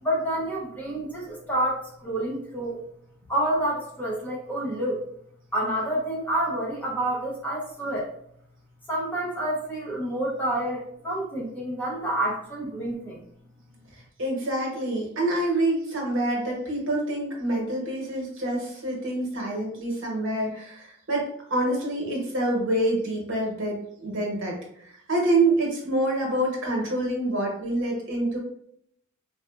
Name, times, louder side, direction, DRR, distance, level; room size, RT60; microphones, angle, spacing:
voice 1, 0.0-2.8 3.3-5.0 5.5-8.1 8.9-13.2, right 1 dB, 10° left, -4 dB, 0.7 m, -28 dB
voice 2, 14.2-21.2 21.5-24.5 25.1-28.4, right 1 dB, 65° right, -1 dB, 1.1 m, -26 dB
4.0 x 2.4 x 2.4 m, 0.70 s
head